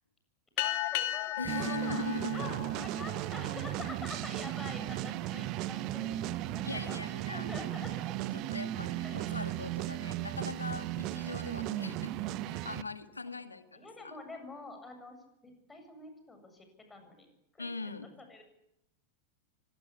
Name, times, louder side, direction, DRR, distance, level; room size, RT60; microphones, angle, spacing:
sound 1, 0.6-3.5, left 14 dB, 50° left, 2.0 m, -35 dB
voice 1, 0.6-8.3 9.0-9.4 13.7-15.2 15.4-17.3 17.5-17.9 18.3-18.4, left 3 dB, 10° left, 6 dB, 7.6 m, -47 dB
voice 2, 1.4-2.6 6.6-7.5 8.3-14.2 17.6-18.1, left 3 dB, 80° left, 10 dB, 2.0 m, -41 dB
sound 2, 1.5-12.8, right 14 dB, 40° right, 1.1 m, -36 dB
25.0 x 19.5 x 8.5 m, 0.80 s
figure-of-eight pair, 90°, 0 cm